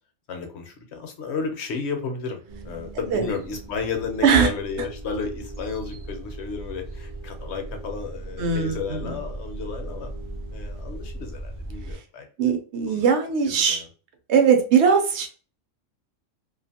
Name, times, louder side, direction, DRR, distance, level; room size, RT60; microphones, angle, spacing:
voice 1, 0.3-2.4 2.6-10.1 10.5-12.3 12.9-13.0 13.4-13.9, left 5 dB, 65° left, 5 dB, 0.9 m, -32 dB
sound 1, 2.5-11.9, right 2 dB, 40° right, 0.4 m, -38 dB
voice 2, 8.4-9.2 12.4-13.8 14.3-15.3, right 6 dB, 65° right, 4 dB, 0.9 m, -20 dB
2.5 x 2.4 x 2.7 m, 0.39 s
omnidirectional pair, 1.3 m